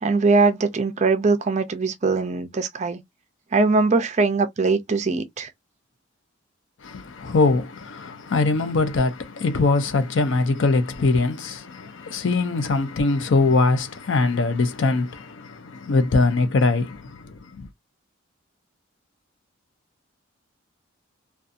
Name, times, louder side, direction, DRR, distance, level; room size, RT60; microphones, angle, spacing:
voice 1, 0.0-3.0 3.5-5.5, right 3 dB, 35° right, 0.4 m, -21 dB
voice 2, 6.8-17.7, left 3 dB, 60° left, 0.5 m, -22 dB
2.6 x 2.3 x 2.5 m
head